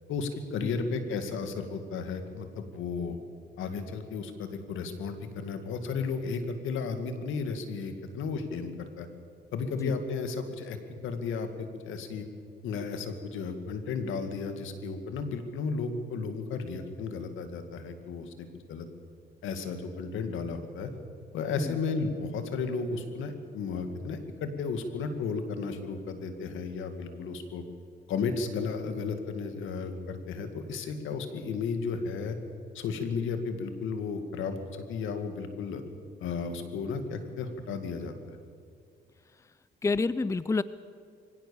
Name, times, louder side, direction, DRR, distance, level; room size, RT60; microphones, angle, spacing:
voice 1, 0.1-3.2 3.6-8.7 9.0-9.1 9.5-10.8 11.0-12.3 12.6-18.9 19.4-20.9 21.3-27.6 28.1-32.4 32.7-35.8 36.2-38.4, left 5 dB, 85° left, 8 dB, 2.2 m, -34 dB
voice 2, 39.8-40.6, left 3 dB, 15° left, 17 dB, 0.5 m, -28 dB
24.0 x 17.0 x 7.1 m, 2.2 s
cardioid pair, 90°, 20 cm